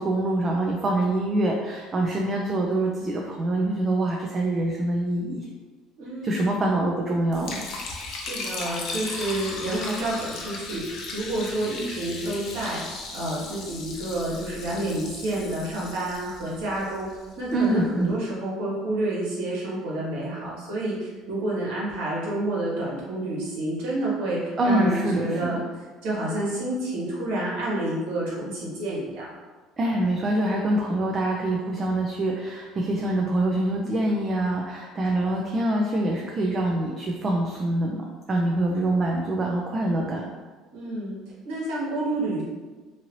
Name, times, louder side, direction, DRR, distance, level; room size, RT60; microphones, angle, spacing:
voice 1, 0.0-5.5 6.2-7.6 17.5-18.2 24.6-25.6 29.8-40.3, right 1 dB, 25° right, -1 dB, 0.3 m, -25 dB
voice 2, 6.0-6.7 8.1-17.1 17.4-25.6 26.0-29.3 40.7-41.2 41.4-42.4, right 1 dB, 85° right, -6 dB, 1.3 m, -29 dB
Liquid, 7.3-17.5, left 3 dB, 50° left, 0.5 m, -37 dB
2.7 x 2.6 x 2.9 m, 1.3 s
cardioid pair, 135°, 0 cm